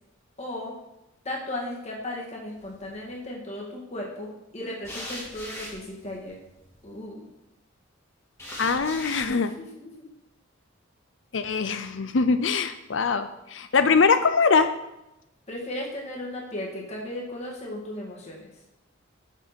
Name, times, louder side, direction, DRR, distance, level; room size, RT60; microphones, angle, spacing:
voice 1, 0.4-0.7 1.2-6.4 6.8-7.2 9.6-10.1 15.5-18.5, left 1 dB, 35° left, -2 dB, 1.9 m, -36 dB
sound 1, 2.6-3.1 4.8-6.9 8.4-9.3, left 1 dB, 15° left, 1.9 m, -40 dB
voice 2, 8.6-9.5 11.3-14.7, left 5 dB, 65° left, 10 dB, 0.6 m, -22 dB
7.4 x 6.2 x 4.3 m, 0.91 s
head